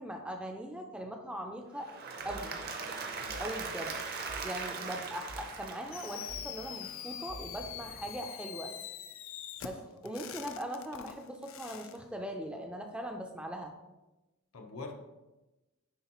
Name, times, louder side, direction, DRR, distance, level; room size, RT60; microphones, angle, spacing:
voice 1, 0.0-1.9 2.2-2.6 3.4-3.9 4.4-8.8 9.6-13.7, equal, 5° right, 3 dB, 0.4 m, -40 dB
Applause / Crowd, 1.7-6.7, right 4 dB, 45° right, 0.6 m, -40 dB
sound 1, 2.2-8.2, right 1 dB, 85° right, 1.4 m, -51 dB
voice 2, 3.2-3.6 9.7-10.2 14.5-15.0, left 3 dB, 85° left, 3 dB, 0.9 m, -46 dB
Fireworks, 5.9-12.0, left 10 dB, 65° left, 0.4 m, -44 dB
9.5 x 3.6 x 3.0 m, 1.1 s
head